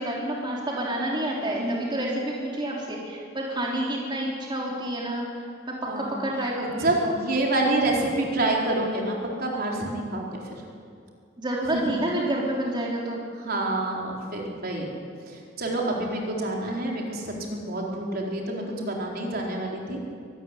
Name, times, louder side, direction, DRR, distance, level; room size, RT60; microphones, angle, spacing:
voice 1, 0.0-7.2 11.4-13.2, right 1 dB, 25° right, -3 dB, 3.3 m, -29 dB
voice 2, 1.6-2.0 5.9-6.2 6.6-10.3 11.7-12.0 13.4-14.9 15.3-20.0, right 2 dB, 55° right, -1 dB, 4.1 m, -27 dB
24.0 x 13.5 x 9.9 m, 2.3 s
head